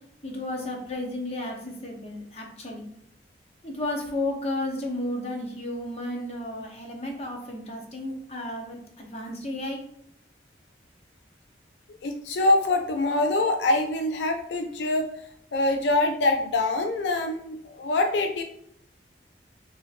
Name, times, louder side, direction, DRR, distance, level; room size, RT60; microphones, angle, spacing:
voice 1, 0.2-2.8 3.6-9.8, left 1 dB, 35° left, 1 dB, 0.8 m, -33 dB
voice 2, 11.9-15.1 15.5-18.4, left 2 dB, 80° left, 5 dB, 0.4 m, -24 dB
5.0 x 2.8 x 2.6 m, 0.73 s
head